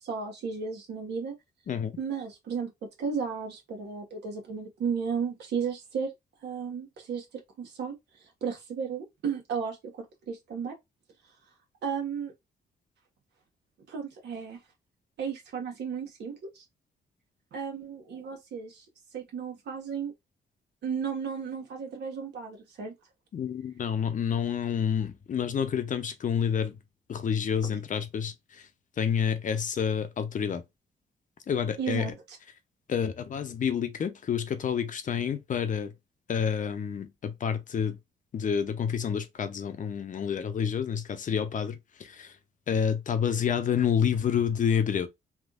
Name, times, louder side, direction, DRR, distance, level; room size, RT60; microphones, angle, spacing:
voice 1, 0.0-1.3 2.0-2.7 3.0-6.1 6.4-7.2 7.6-7.9 8.4-10.7 11.8-12.3 13.9-14.6 15.2-16.6 17.5-18.8 19.1-20.1 20.8-22.9 31.8-32.4, right 6 dB, 85° right, 1.4 m, -34 dB
voice 2, 23.3-26.8 27.1-28.6 29.0-30.6 31.5-32.1 32.9-35.9 36.3-38.0 38.3-42.3 42.7-45.1, left 7 dB, 50° left, 0.7 m, -29 dB
3.5 x 2.5 x 2.4 m
cardioid pair, 90°, 17 cm